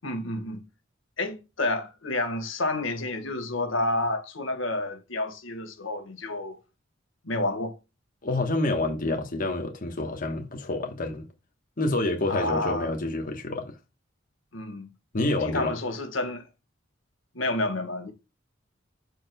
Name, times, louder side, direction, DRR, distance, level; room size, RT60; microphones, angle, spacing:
voice 1, 0.0-0.6 1.2-6.6 7.2-7.7 12.3-12.9 14.5-14.9 15.4-16.4 17.3-18.1, left 2 dB, 75° left, 1.7 m, -29 dB
voice 2, 8.2-11.3 11.8-13.7 15.1-15.7, left 2 dB, 45° left, 1.2 m, -28 dB
13.0 x 4.6 x 2.3 m
head